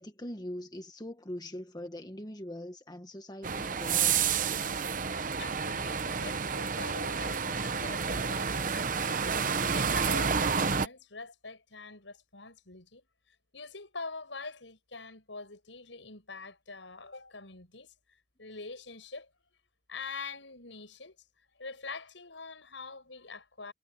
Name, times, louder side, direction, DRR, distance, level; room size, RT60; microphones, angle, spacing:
voice 1, 0.0-4.2, left 1 dB, 20° left, 1.5 m, -42 dB
sound 1, 3.4-10.9, right 6 dB, 45° right, 0.9 m, -30 dB
voice 2, 5.4-9.2 9.7-13.0 13.5-17.9 18.4-19.3 19.9-21.2 21.6-23.7, left 4 dB, 80° left, 6.5 m, -44 dB
head